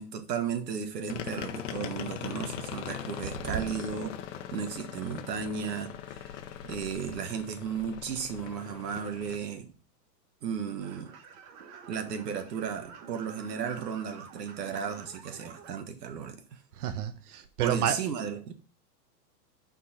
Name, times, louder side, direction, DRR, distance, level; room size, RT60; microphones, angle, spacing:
voice 1, 0.0-4.1 4.5-6.2 6.6-9.7 10.4-11.1 11.9-16.6 17.6-18.5, right 7 dB, 80° right, 1.6 m, -34 dB
sound 1, 1.1-9.4, left 9 dB, 50° left, 1.0 m, -40 dB
sound 2, 10.8-15.8, right 6 dB, 45° right, 1.3 m, -49 dB
voice 2, 16.8-18.0, right 10 dB, 65° right, 1.0 m, -29 dB
6.1 x 4.6 x 5.7 m
hypercardioid pair, 150°, 49 cm